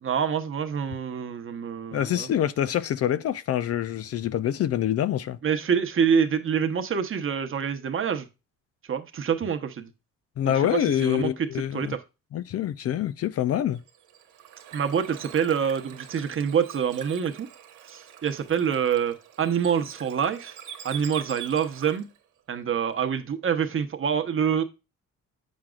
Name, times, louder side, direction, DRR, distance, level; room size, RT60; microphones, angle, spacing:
voice 1, 0.0-2.3 5.4-8.3 8.9-9.9 10.4-12.0 14.7-17.5 17.9-20.6 20.8-22.1 22.5-24.6, right 7 dB, 45° right, 0.9 m, -26 dB
voice 2, 1.9-5.4 10.4-12.0 12.3-13.8, left 11 dB, 55° left, 0.4 m, -26 dB
Bird / Water, 13.7-22.2, right 10 dB, 80° right, 1.2 m, -44 dB
7.3 x 6.2 x 2.4 m
cardioid pair, 90°, 30 cm